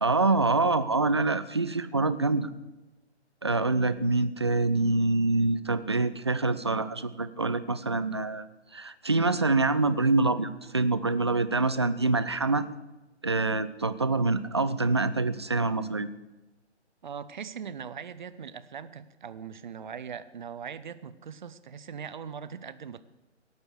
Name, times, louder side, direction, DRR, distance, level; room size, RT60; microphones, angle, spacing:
voice 1, 0.0-2.5 3.4-8.5 8.7-12.7 13.2-16.1, right 3 dB, 25° right, 13 dB, 0.4 m, -25 dB
voice 2, 17.0-23.0, right 7 dB, 45° right, 14 dB, 0.8 m, -40 dB
17.5 x 7.0 x 8.0 m, 1.1 s
figure-of-eight pair, 135°, 34 cm